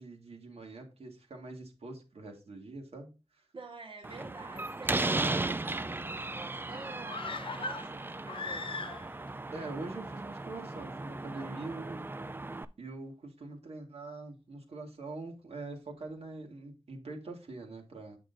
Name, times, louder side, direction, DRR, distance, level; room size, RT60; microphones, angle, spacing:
voice 1, 0.0-3.4 9.5-12.0 12.8-18.2, right 3 dB, 70° right, 1.9 m, -44 dB
voice 2, 3.5-8.9, right 3 dB, 55° right, 1.7 m, -48 dB
Slam, 4.0-12.7, right 2 dB, 20° right, 0.4 m, -36 dB
sound 1, 7.1-9.3 9.6-9.7, left 3 dB, 55° left, 0.6 m, -39 dB
8.4 x 6.2 x 2.6 m
wide cardioid pair, 115°, 11 cm